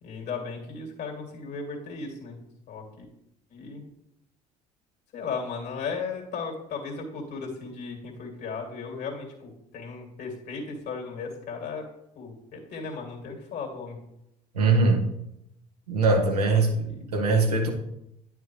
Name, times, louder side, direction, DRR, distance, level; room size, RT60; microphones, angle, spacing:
voice 1, 0.0-2.4 2.7-3.0 3.5-3.8 5.1-11.8 12.2-14.0 16.5-16.6 16.9-17.0, left 5 dB, 60° left, 2.6 m, -36 dB
voice 2, 14.5-15.0 15.9-16.9 17.1-17.7, right 3 dB, 90° right, 1.0 m, -21 dB
10.0 x 5.5 x 3.2 m
hypercardioid pair, 55°, 19 cm